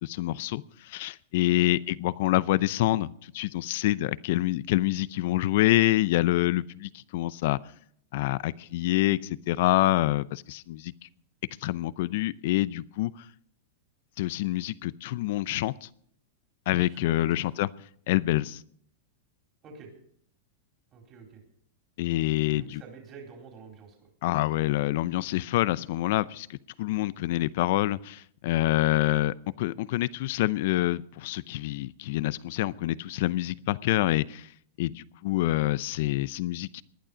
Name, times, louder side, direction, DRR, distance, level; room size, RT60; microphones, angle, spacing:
voice 1, 0.0-7.6 8.1-10.9 11.6-13.1 14.2-15.9 16.7-17.7 18.1-18.6 22.0-22.8 24.2-34.5 34.8-36.8, left 16 dB, 60° left, 0.6 m, -26 dB
voice 2, 16.8-17.4 19.6-19.9 20.9-21.4 22.5-23.9, right 5 dB, 30° right, 4.2 m, -47 dB
19.5 x 11.5 x 5.1 m
hypercardioid pair, 130°, 0 cm